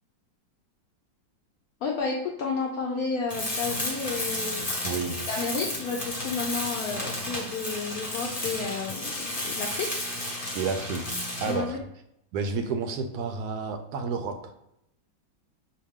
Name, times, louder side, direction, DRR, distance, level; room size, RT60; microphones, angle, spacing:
voice 1, 1.8-5.0 5.3-10.0 11.5-11.8, left 4 dB, 70° left, -1 dB, 0.9 m, -32 dB
Tools, 3.3-11.7, left 1 dB, 25° left, 1.0 m, -32 dB
voice 2, 4.8-5.2 10.5-11.8 12.3-14.5, right 5 dB, 70° right, 7 dB, 1.0 m, -31 dB
6.4 x 2.2 x 3.5 m, 0.79 s
omnidirectional pair, 2.0 m